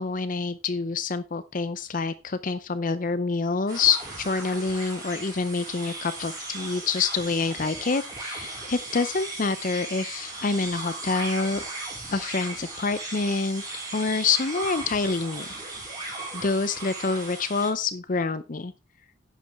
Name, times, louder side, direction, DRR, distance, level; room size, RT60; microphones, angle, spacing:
voice 1, 0.0-11.6 12.1-13.6 13.9-15.5 16.3-18.7, left 4 dB, 40° left, 14 dB, 0.6 m, -27 dB
sound 1, 3.7-17.7, right 2 dB, 20° right, 4.6 m, -37 dB
11.0 x 8.4 x 3.5 m, 0.27 s
head